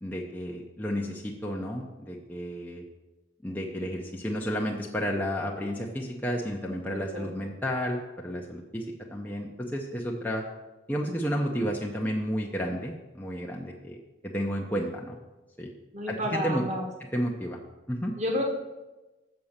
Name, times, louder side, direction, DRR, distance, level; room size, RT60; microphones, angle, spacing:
voice 1, 0.0-2.8 3.4-8.9 9.1-10.4 10.9-14.0 14.2-15.2 15.6-15.7 16.1-16.6 17.1-17.6 17.9-18.1, equal, 10° left, -2 dB, 0.6 m, -31 dB
voice 2, 6.8-7.5 15.9-16.9 18.2-18.5, left 1 dB, 35° right, 2 dB, 1.3 m, -31 dB
6.5 x 6.0 x 7.2 m, 1.1 s
head